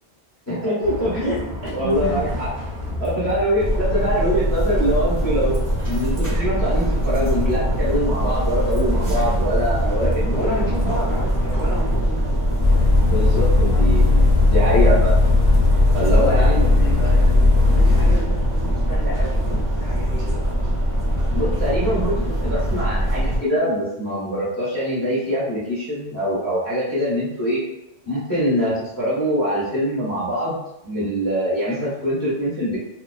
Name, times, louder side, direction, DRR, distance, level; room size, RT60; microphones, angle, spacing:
voice 1, 0.5-1.4 1.7-2.5 3.0-5.5 5.9-11.0 13.0-15.2 15.9-16.7 21.3-27.6 28.1-30.6 30.8-32.8, equal, 15° left, -8 dB, 0.8 m, -23 dB
Bus, 0.8-12.0, left 1 dB, 75° right, 1.0 m, -32 dB
voice 2, 1.1-2.4 3.2-3.3 10.3-12.3 13.6-14.0 16.0-20.8, right 1 dB, 55° right, -8 dB, 0.8 m, -32 dB
sound 1, 3.6-23.4, right 1 dB, 20° right, 0.7 m, -22 dB
sound 2, 12.6-18.1, left 3 dB, 60° left, 0.4 m, -16 dB
2.7 x 2.0 x 2.3 m, 0.87 s
omnidirectional pair, 1.3 m